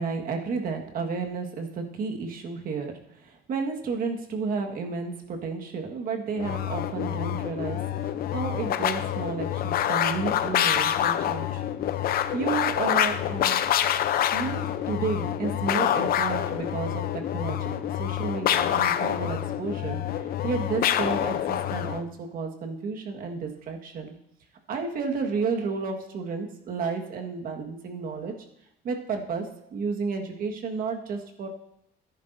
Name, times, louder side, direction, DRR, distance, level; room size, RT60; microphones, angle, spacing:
voice 1, 0.0-2.9 3.5-7.9 8.3-11.6 12.3-13.6 14.3-20.0 20.4-24.1 24.7-28.3 28.8-31.5, right 5 dB, 60° right, 2 dB, 1.7 m, -32 dB
sound 1, 6.4-22.0, left 11 dB, 60° left, 0.7 m, -27 dB
14.0 x 10.5 x 2.7 m, 0.80 s
cardioid pair, 110°, 17 cm